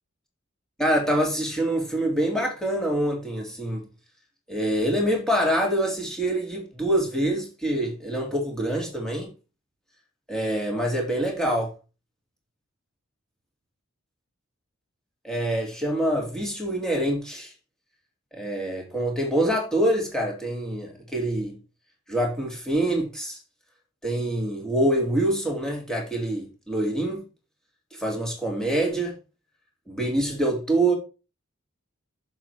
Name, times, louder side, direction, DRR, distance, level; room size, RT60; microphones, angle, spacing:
voice 1, 0.8-3.8 4.5-9.3 10.3-11.7 15.2-17.5 18.3-21.6 22.1-23.4 24.0-27.2 28.0-29.2 29.9-31.0, right 1 dB, 5° left, 2.4 m, -25 dB
6.9 x 6.2 x 4.6 m
head